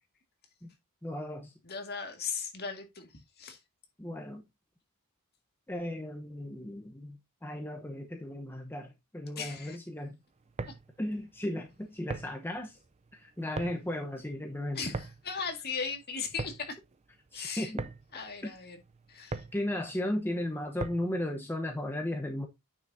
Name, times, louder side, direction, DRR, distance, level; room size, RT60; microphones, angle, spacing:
voice 1, 1.0-1.5 4.0-4.4 5.7-10.2 11.0-12.8 13.1-14.9 17.3-17.9 18.4-18.6 19.5-22.5, left 1 dB, 10° left, 0.9 m, -35 dB
voice 2, 1.6-3.6 9.4-9.8 10.7-10.8 14.8-16.8 17.3-17.7 18.1-18.8 19.1-19.4, left 5 dB, 45° left, 1.9 m, -37 dB
sound 1, 10.4-21.2, right 3 dB, 30° right, 0.5 m, -42 dB
9.5 x 6.0 x 2.7 m
head